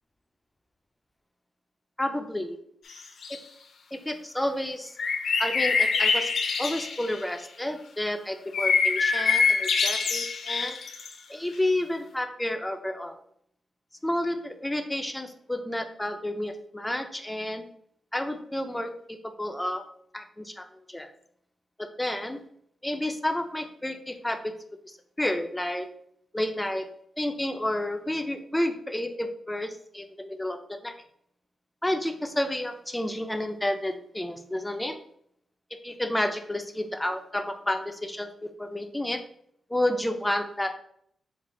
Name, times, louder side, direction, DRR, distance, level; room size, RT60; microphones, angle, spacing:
voice 1, 2.0-2.6 3.3-3.4 3.9-5.0 5.4-6.3 6.6-10.8 11.3-13.2 14.0-17.6 18.1-19.9 20.1-21.1 21.8-22.4 22.8-24.5 24.8-25.9 26.3-26.9 27.2-30.9 31.8-34.9 35.8-39.2 39.7-40.7, left 1 dB, 10° left, 7 dB, 0.4 m, -30 dB
sound 1, 2.9-3.4 5.0-7.2 8.5-11.1, left 5 dB, 65° left, 0.6 m, -25 dB
4.6 x 2.4 x 4.0 m, 0.67 s
wide cardioid pair, 140°, 0 cm